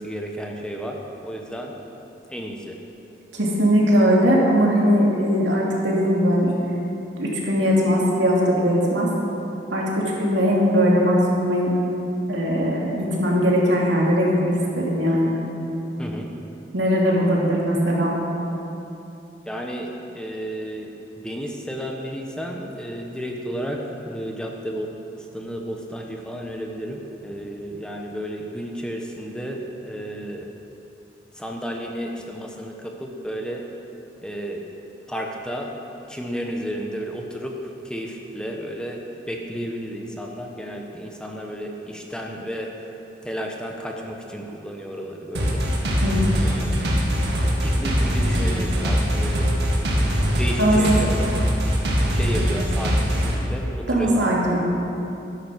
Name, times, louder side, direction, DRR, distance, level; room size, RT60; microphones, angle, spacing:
voice 1, 0.0-1.7 2.3-2.8 16.0-16.3 19.4-20.9 21.2-24.9 25.1-30.5 31.4-33.6 34.2-34.6 35.1-35.7 36.1-42.7 43.2-45.7 46.4-46.8 47.6-49.5 50.4-51.3 52.1-54.3, equal, 5° left, 1 dB, 1.0 m, -32 dB
voice 2, 3.3-6.5 7.2-9.1 9.7-11.7 12.3-15.3 16.7-18.2 46.0-46.2 50.6-50.8 53.9-54.6, equal, 90° right, -3 dB, 2.9 m, -20 dB
sound 1, 45.3-53.4, equal, 70° right, 2.2 m, -22 dB
13.0 x 10.5 x 6.3 m, 2.9 s
head